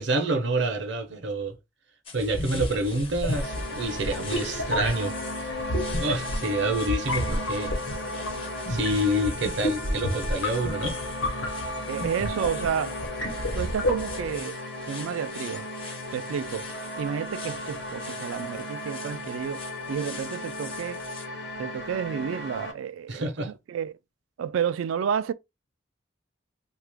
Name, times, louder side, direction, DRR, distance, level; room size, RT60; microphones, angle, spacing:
voice 1, 0.0-1.6 2.1-5.5 6.0-7.7 8.7-11.0 23.1-23.5, right 1 dB, 60° right, 0.7 m, -28 dB
sound 1, 2.1-21.3, left 5 dB, 30° left, 0.5 m, -45 dB
sound 2, 2.3-14.4, left 1 dB, 85° left, 1.0 m, -31 dB
sound 3, 3.3-22.7, left 1 dB, 60° left, 0.8 m, -36 dB
voice 2, 11.9-13.0 13.5-14.6 14.9-15.7 16.1-21.0 21.6-23.9 24.4-25.3, right 8 dB, 85° right, 0.3 m, -31 dB
2.8 x 2.4 x 3.3 m
head